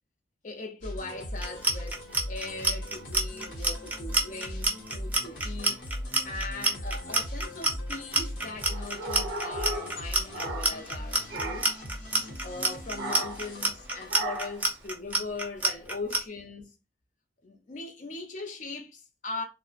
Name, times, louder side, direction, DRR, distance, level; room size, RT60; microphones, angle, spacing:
voice 1, 0.4-2.0 2.3-5.8 6.2-11.7 12.4-16.7 17.4-19.4, left 3 dB, 45° left, 0.5 m, -40 dB
sound 1, 0.8-14.7, equal, 90° left, 0.8 m, -39 dB
Clock, 1.4-16.2, right 2 dB, 10° right, 0.4 m, -27 dB
sound 2, 8.6-11.0 11.3-11.8 13.0-13.5 14.1-14.7, right 2 dB, 80° right, 0.5 m, -36 dB
2.7 x 2.0 x 2.3 m
head